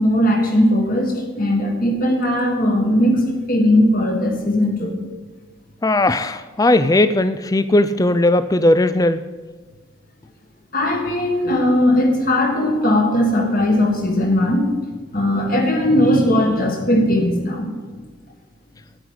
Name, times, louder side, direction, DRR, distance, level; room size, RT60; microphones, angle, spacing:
voice 1, 0.0-5.0 10.7-14.8 15.1-17.7, left 1 dB, 45° left, 2 dB, 1.6 m, -18 dB
voice 2, 5.8-9.2, left 1 dB, 15° left, 13 dB, 0.4 m, -17 dB
11.5 x 9.8 x 4.8 m, 1.4 s
head